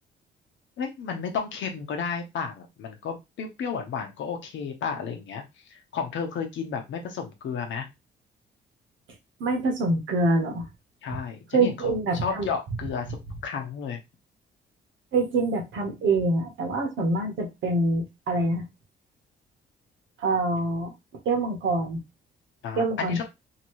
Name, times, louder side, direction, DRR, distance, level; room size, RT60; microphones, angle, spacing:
voice 1, 0.8-5.4 5.7-7.9 11.0-14.0 22.6-23.2, left 6 dB, 70° left, 4 dB, 0.9 m, -32 dB
voice 2, 9.4-10.6 11.5-12.5 15.1-18.6 20.2-20.9 21.2-22.0 22.7-23.2, right 2 dB, 75° right, 2 dB, 1.2 m, -25 dB
2.9 x 2.8 x 3.0 m, 0.22 s
cardioid pair, 90°, 20 cm